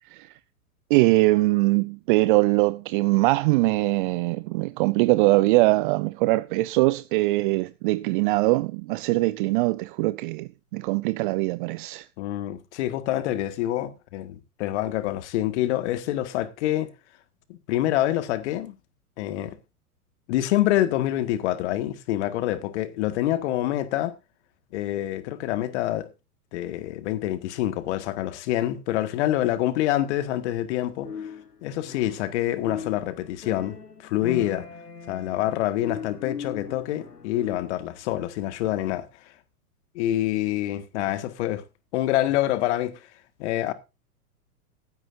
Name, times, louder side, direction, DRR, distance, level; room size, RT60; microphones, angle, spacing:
voice 1, 0.9-12.1, right 21 dB, 35° right, 0.6 m, -22 dB
voice 2, 12.2-16.9 17.5-18.7 19.2-19.6 20.3-24.1 24.7-26.1 26.5-31.1 31.6-34.7 35.1-39.1 40.0-41.6 41.9-43.1 43.4-43.7, left 14 dB, 50° left, 1.9 m, -26 dB
sound 1, 31.0-37.9, left 6 dB, 90° left, 1.4 m, -38 dB
16.0 x 13.0 x 2.6 m
figure-of-eight pair, 100°, 46 cm